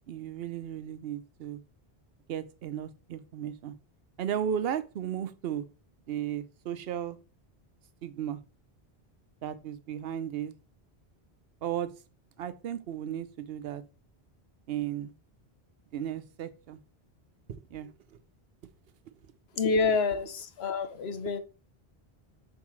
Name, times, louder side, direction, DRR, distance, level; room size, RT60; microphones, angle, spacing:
voice 1, 0.1-1.6 2.3-3.8 4.2-5.7 6.1-7.2 8.0-8.4 9.4-10.5 11.6-11.9 12.4-13.8 14.7-15.1 15.9-16.8 17.7-18.2, right 9 dB, 70° right, 13 dB, 0.9 m, -35 dB
voice 2, 19.6-21.4, left 4 dB, 70° left, 10 dB, 1.1 m, -28 dB
7.2 x 5.5 x 3.1 m, 0.33 s
omnidirectional pair, 1.1 m